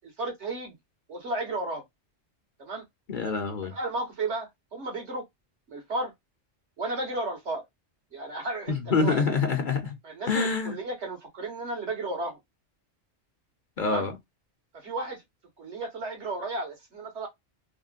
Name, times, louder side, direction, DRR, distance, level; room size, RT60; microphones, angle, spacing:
voice 1, 0.2-0.7 1.1-1.8 2.6-2.8 3.6-5.2 5.7-6.1 6.8-7.6 8.1-9.2 10.0-12.4 13.9-14.1 14.7-15.2 15.6-17.3, right 2 dB, 75° right, 1.7 m, -33 dB
voice 2, 3.1-3.8 8.7-9.9 10.3-10.8 13.8-14.2, left 4 dB, 50° left, 0.8 m, -26 dB
3.6 x 2.2 x 2.4 m
omnidirectional pair, 1.2 m